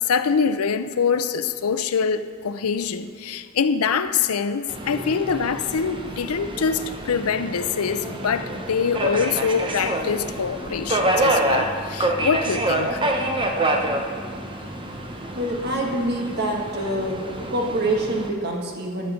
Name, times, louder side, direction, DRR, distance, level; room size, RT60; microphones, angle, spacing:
voice 1, 0.0-13.0, left 6 dB, 90° left, 11 dB, 0.6 m, -24 dB
Subway metro underground, 4.7-18.3, right 1 dB, 25° right, 0.8 m, -27 dB
voice 2, 15.3-17.2 17.5-19.1, right 1 dB, 50° right, 0 dB, 1.6 m, -25 dB
13.5 x 5.1 x 7.1 m, 2.3 s
head